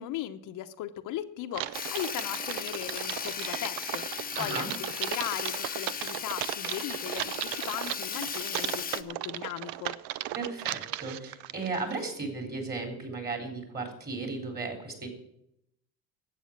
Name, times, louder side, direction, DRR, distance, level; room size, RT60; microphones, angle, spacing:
voice 1, 0.0-9.9, left 12 dB, 65° left, 7 dB, 0.9 m, -38 dB
Typing, 1.5-12.0, right 15 dB, 85° right, 0.6 m, -36 dB
Sawing, 1.7-9.0, left 7 dB, 25° left, 0.8 m, -37 dB
voice 2, 4.4-4.7 10.3-15.1, right 3 dB, 30° right, 3 dB, 3.9 m, -35 dB
12.0 x 8.4 x 7.2 m, 0.79 s
supercardioid pair, 100°, 34 cm